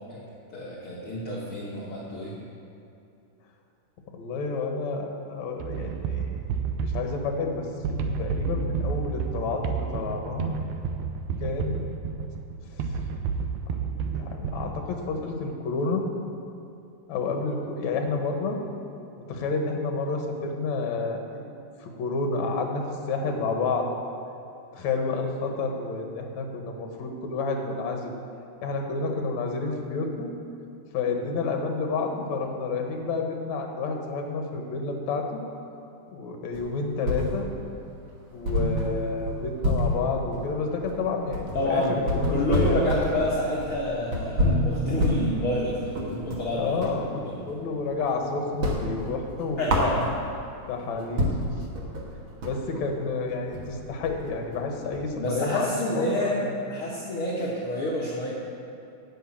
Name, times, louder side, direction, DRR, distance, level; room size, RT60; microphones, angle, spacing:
voice 1, 0.5-2.4 41.5-42.0 42.3-47.3 49.6-50.2 55.1-56.4 56.7-58.3, left 1 dB, 55° left, -6 dB, 1.9 m, -28 dB
voice 2, 4.1-6.3 6.8-10.5 11.4-11.8 12.7-12.8 13.7-16.0 17.1-18.6 19.3-21.2 21.8-23.9 24.7-28.1 28.6-30.3 30.9-35.4 36.1-37.5 38.3-42.9 46.5-49.7 50.7-51.4 52.4-55.7 56.0-56.5, left 4 dB, 70° left, 3 dB, 2.4 m, -30 dB
sound 1, 5.6-15.2, right 5 dB, 80° right, 2.1 m, -31 dB
sound 2, 36.5-37.7 38.0-38.1 38.4-47.0 47.4-48.2 48.5-50.5 50.9-51.0 51.2-55.3, left 1 dB, 50° right, 1.8 m, -28 dB
10.0 x 7.7 x 8.6 m, 2.6 s
omnidirectional pair, 3.5 m